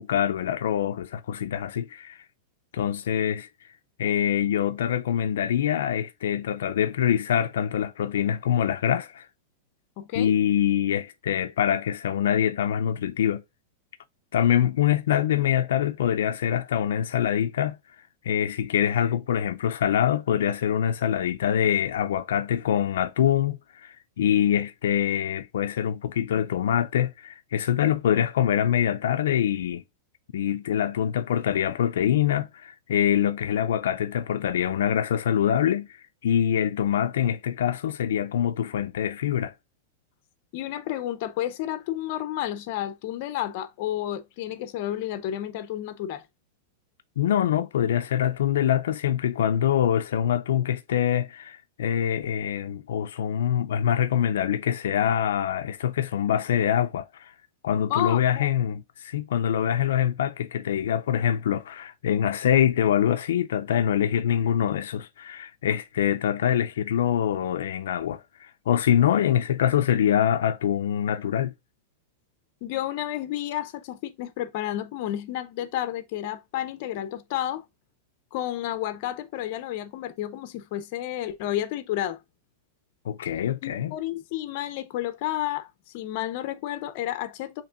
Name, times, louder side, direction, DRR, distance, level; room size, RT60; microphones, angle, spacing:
voice 1, 0.0-2.2 2.7-3.5 4.0-9.3 10.2-13.4 14.3-17.8 18.2-29.8 30.3-39.5 47.2-57.3 57.6-71.5 83.0-83.9, left 9 dB, 85° left, 0.4 m, -24 dB
voice 2, 10.0-10.3 40.5-46.2 57.9-58.5 72.6-77.6 78.3-82.2 83.6-87.6, left 12 dB, 40° left, 0.6 m, -31 dB
6.9 x 3.0 x 2.4 m
supercardioid pair, 170°, 0 cm